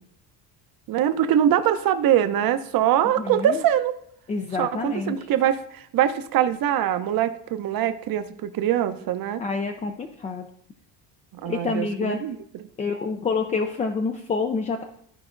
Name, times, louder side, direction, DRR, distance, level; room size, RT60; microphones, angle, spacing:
voice 1, 0.9-3.9 4.6-9.4 11.4-12.7, right 10 dB, 55° right, 10 dB, 0.7 m, -23 dB
voice 2, 3.2-3.6 4.3-5.2 9.4-10.5 11.5-12.2 12.8-14.8, left 4 dB, 20° left, 4 dB, 0.3 m, -27 dB
13.5 x 4.8 x 2.5 m, 0.70 s
cardioid pair, 145°, 41 cm